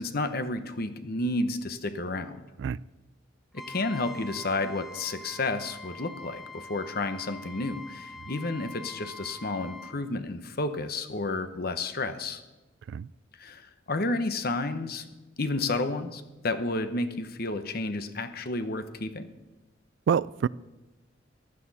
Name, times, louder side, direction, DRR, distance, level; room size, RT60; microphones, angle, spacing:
voice 1, 0.0-2.4 3.5-12.4 13.4-15.0 15.4-19.3, left 2 dB, 55° left, 1.0 m, -31 dB
Trumpet, 3.5-10.0, left 2 dB, ahead, 0.7 m, -44 dB
voice 2, 20.1-20.5, right 7 dB, 65° right, 0.3 m, -26 dB
15.0 x 12.0 x 4.2 m
head